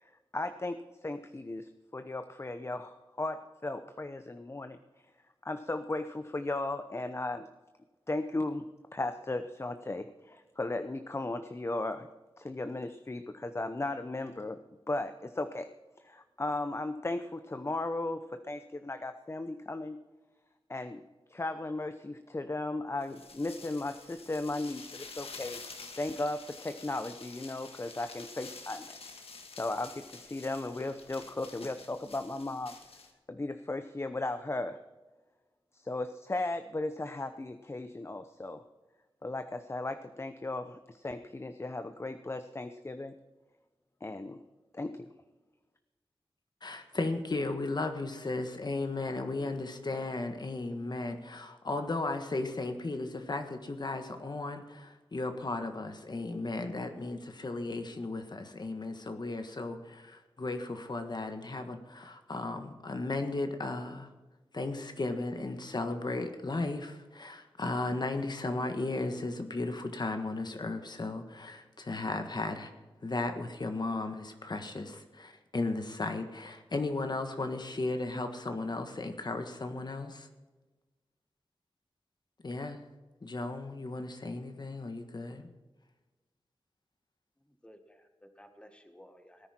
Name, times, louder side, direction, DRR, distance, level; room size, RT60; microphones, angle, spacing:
voice 1, 0.0-4.8 5.4-7.5 8.1-12.1 12.4-14.6 14.9-15.7 16.0-20.0 20.7-21.0 21.3-25.6 26.0-28.9 29.5-32.7 33.3-34.8 35.7-38.6 39.2-43.1 44.0-44.4 44.7-45.1, left 2 dB, 25° left, 9 dB, 0.7 m, -36 dB
sound 1, 23.0-33.1, left 4 dB, 85° left, 1.7 m, -48 dB
voice 2, 46.6-64.1 64.5-72.7 73.0-80.3 82.4-82.8 83.2-85.5, left 2 dB, 45° left, 6 dB, 1.5 m, -35 dB
voice 3, 87.4-89.5, equal, 10° left, 6 dB, 1.8 m, -56 dB
17.5 x 9.9 x 4.4 m, 1.2 s
wide cardioid pair, 75°, 10 cm